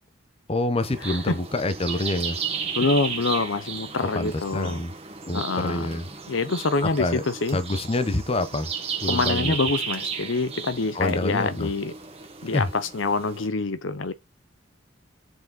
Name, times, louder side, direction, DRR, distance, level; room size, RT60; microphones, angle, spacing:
voice 1, 0.5-2.4 4.1-4.9 5.3-6.0 7.0-7.2 7.5-8.7 9.0-9.6 10.9-11.7 12.5-12.7, left 2 dB, 30° left, 0.8 m, -26 dB
sound 1, 0.8-13.5, right 6 dB, 30° right, 1.6 m, -34 dB
voice 2, 1.0-1.4 2.7-4.8 5.3-5.9 6.3-7.6 9.1-11.9 12.4-14.1, left 3 dB, 70° left, 0.8 m, -26 dB
7.9 x 4.9 x 4.1 m
head